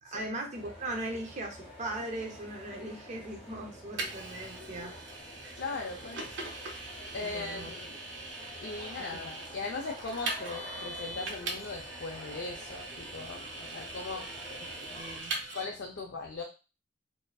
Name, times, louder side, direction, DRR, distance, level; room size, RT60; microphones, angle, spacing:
voice 1, 0.0-4.9 7.2-7.7 9.0-9.1 14.6-15.5, right 1 dB, 40° right, 2 dB, 0.5 m, -39 dB
sound 1, 0.5-15.2, equal, 30° left, 0.7 m, -48 dB
Vehicle, 4.0-15.6, right 2 dB, 85° right, 0.6 m, -41 dB
voice 2, 5.6-6.5 7.1-8.0 8.6-14.3 15.5-16.4, left 3 dB, 70° left, -1 dB, 0.4 m, -39 dB
2.4 x 2.4 x 2.2 m, 0.31 s
head